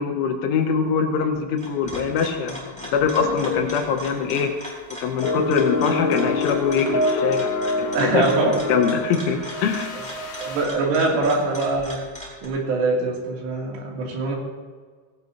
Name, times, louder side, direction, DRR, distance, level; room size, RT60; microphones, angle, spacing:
voice 1, 0.0-8.2 8.7-10.0, left 6 dB, 75° left, 4 dB, 3.5 m, -24 dB
sound 1, 1.4-12.5, equal, ahead, 3.3 m, -39 dB
sound 2, 3.2-4.0 4.3-4.5 5.2-10.6, left 2 dB, 60° left, 3.3 m, -26 dB
voice 2, 7.9-8.6 9.2-9.3 10.4-12.0 12.4-14.4, right 3 dB, 75° right, -2 dB, 5.3 m, -23 dB
20.0 x 17.5 x 2.8 m, 1.5 s
omnidirectional pair, 5.7 m